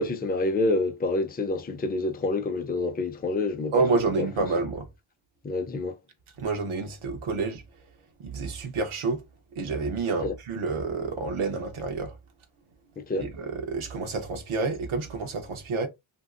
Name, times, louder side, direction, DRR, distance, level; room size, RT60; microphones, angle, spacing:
voice 1, 0.0-3.8 4.2-4.3 5.4-6.0 10.2-10.3 13.0-13.3, left 2 dB, 20° left, 0.4 m, -27 dB
voice 2, 3.7-4.9 6.4-7.6 8.2-9.2 9.6-12.1 13.2-15.9, right 4 dB, 80° right, 0.8 m, -28 dB
2.8 x 2.6 x 2.3 m
wide cardioid pair, 95°, 48 cm